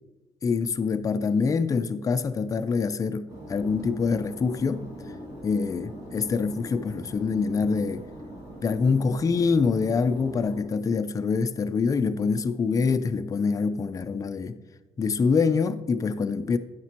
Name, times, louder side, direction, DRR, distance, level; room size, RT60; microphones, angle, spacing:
voice 1, 0.4-4.9 5.4-8.1 8.6-14.6 15.0-16.6, left 5 dB, 25° left, 0.4 m, -25 dB
sound 1, 3.3-10.6, right 1 dB, 30° right, 2.3 m, -42 dB
9.2 x 5.9 x 2.9 m
supercardioid pair, 80°, 12 cm